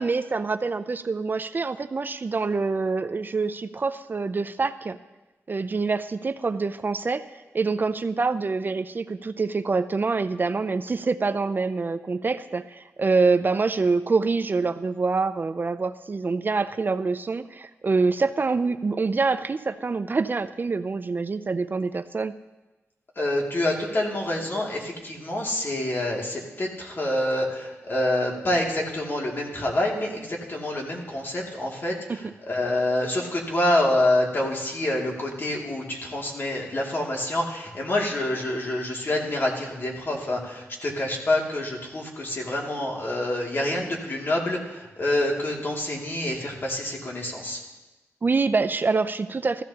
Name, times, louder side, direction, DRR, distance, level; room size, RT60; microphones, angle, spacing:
voice 1, 0.0-5.0 5.5-7.2 7.5-22.3 48.2-49.6, right 4 dB, 40° right, 12 dB, 0.4 m, -25 dB
voice 2, 23.2-47.6, left 1 dB, 45° left, -2 dB, 2.4 m, -27 dB
15.5 x 14.0 x 2.9 m, 1.1 s
wide cardioid pair, 80°, 5 cm